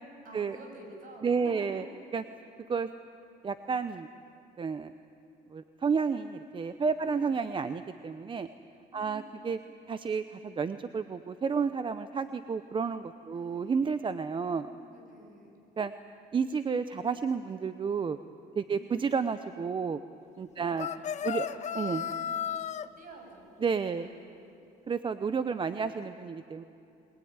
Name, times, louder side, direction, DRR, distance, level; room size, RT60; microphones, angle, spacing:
voice 1, 0.2-1.7 7.0-7.6 8.9-9.6 13.3-13.7 14.3-15.6 18.7-19.1 20.6-20.8 21.3-22.4 23.0-24.4, right 2 dB, 55° right, 2 dB, 7.1 m, -51 dB
voice 2, 1.2-1.8 2.1-2.2 2.7-2.9 3.4-4.1 4.6-4.9 5.5-8.5 8.9-9.6 9.9-14.7 15.8-15.9 16.3-18.2 18.6-20.0 20.4-20.9 21.2-21.5 21.8-22.0 23.6-24.1 24.9-26.6, right 5 dB, 30° right, 11 dB, 0.7 m, -31 dB
sound 1, 20.8-22.9, left 9 dB, 45° left, 0.7 m, -34 dB
23.0 x 20.0 x 9.6 m, 2.7 s
cardioid pair, 110°, 17 cm